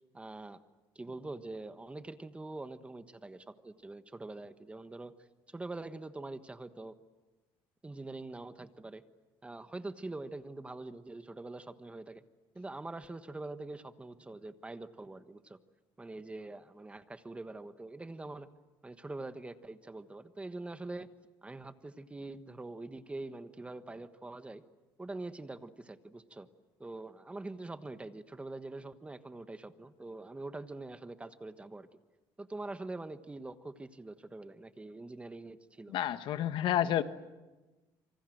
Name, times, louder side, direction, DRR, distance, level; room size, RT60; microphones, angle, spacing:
voice 1, 0.1-0.6 0.9-5.1 5.5-7.0 7.8-9.0 9.4-12.2 12.5-15.6 16.0-18.5 18.8-21.1 21.4-24.6 25.0-26.5 26.8-32.0 32.4-36.0, right 2 dB, 15° right, 10 dB, 1.3 m, -44 dB
voice 2, 35.9-37.0, left 11 dB, 70° left, 11 dB, 1.3 m, -30 dB
27.0 x 25.5 x 7.9 m, 1.2 s
cardioid pair, 120°, 9 cm